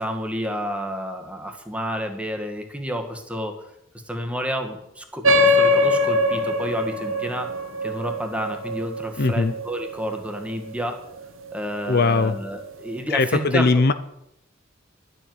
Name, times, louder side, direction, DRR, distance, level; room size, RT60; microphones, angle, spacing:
voice 1, 0.0-3.5 4.1-7.5 7.8-11.0 11.5-13.9, equal, 5° right, 4 dB, 1.7 m, -30 dB
sound 1, 5.2-10.2, left 2 dB, 90° right, 1.4 m, -22 dB
voice 2, 9.2-9.5 11.9-12.3 13.1-13.9, left 3 dB, 55° left, 12 dB, 0.7 m, -19 dB
11.5 x 7.8 x 9.5 m, 0.80 s
head